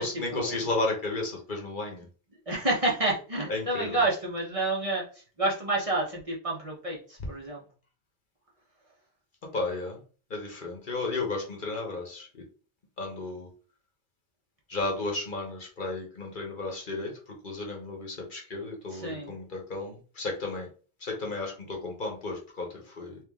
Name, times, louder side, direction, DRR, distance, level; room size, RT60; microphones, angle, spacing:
voice 1, 0.0-2.1 3.5-4.0 9.5-10.0 10.3-12.4 13.0-13.5 14.7-20.7 21.0-23.2, left 3 dB, 50° left, 1 dB, 1.1 m, -33 dB
voice 2, 2.5-7.6 18.9-19.3, right 2 dB, 30° right, -4 dB, 1.0 m, -29 dB
3.4 x 3.1 x 3.6 m, 0.39 s
omnidirectional pair, 1.2 m